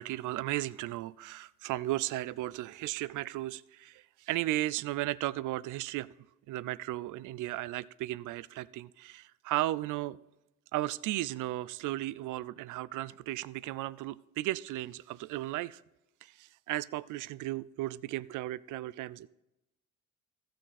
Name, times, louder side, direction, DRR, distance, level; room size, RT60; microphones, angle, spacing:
voice 1, 0.0-6.1 6.5-10.2 10.7-15.8 16.2-19.3, right 16 dB, 80° right, 20 dB, 0.5 m, -35 dB
15.5 x 6.4 x 4.1 m, 0.93 s
cardioid pair, 90°, 30 cm